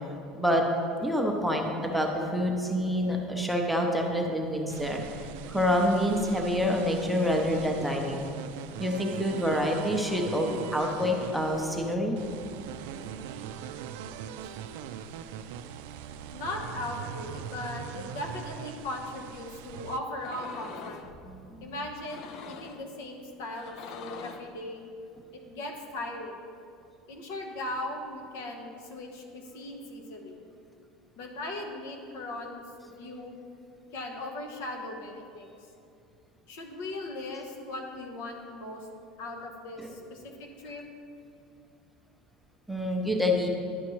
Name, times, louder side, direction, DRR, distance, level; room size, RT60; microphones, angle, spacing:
voice 1, 1.0-5.0 5.5-8.3 8.8-12.2 21.3-21.7 39.8-39.9 42.7-43.5, equal, ahead, 0 dB, 0.6 m, -27 dB
sound 1, 4.7-20.0, right 8 dB, 80° right, 0.3 m, -41 dB
voice 2, 16.3-21.0 21.6-24.9 25.3-26.3 27.1-30.4 31.2-32.6 33.0-33.4 33.9-35.5 36.5-38.9 39.2-40.8, left 1 dB, 85° left, 1 dB, 1.0 m, -38 dB
sound 2, 20.2-21.1 22.0-22.9 23.5-24.6, left 6 dB, 50° left, 0.4 m, -44 dB
10.5 x 5.7 x 3.1 m, 2.5 s
cardioid pair, 155°, 0 cm